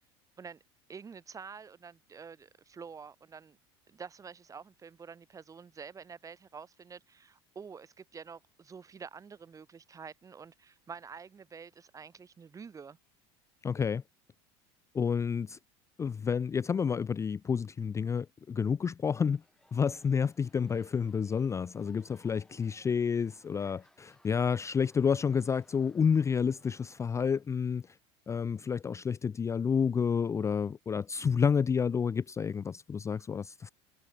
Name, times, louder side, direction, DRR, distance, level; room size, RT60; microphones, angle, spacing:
voice 1, 0.9-3.6 3.9-13.0, right 6 dB, 25° right, 1.8 m, -48 dB
voice 2, 13.6-14.0 14.9-15.6 16.0-19.4 19.7-27.8 28.3-33.7, left 6 dB, 20° left, 0.5 m, -30 dB
sound 1, 19.3-27.1, left 1 dB, 5° left, 5.4 m, -65 dB
supercardioid pair, 105°, 14 cm